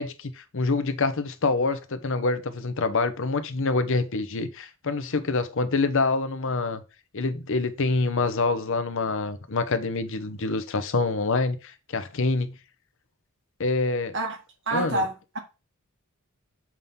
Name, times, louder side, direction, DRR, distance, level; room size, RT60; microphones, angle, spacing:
voice 1, 0.0-6.8 7.1-12.5 13.6-14.1 14.7-15.0, left 3 dB, 60° left, 0.8 m, -26 dB
voice 2, 14.7-15.4, right 2 dB, 60° right, 1.8 m, -27 dB
7.4 x 3.7 x 5.5 m
head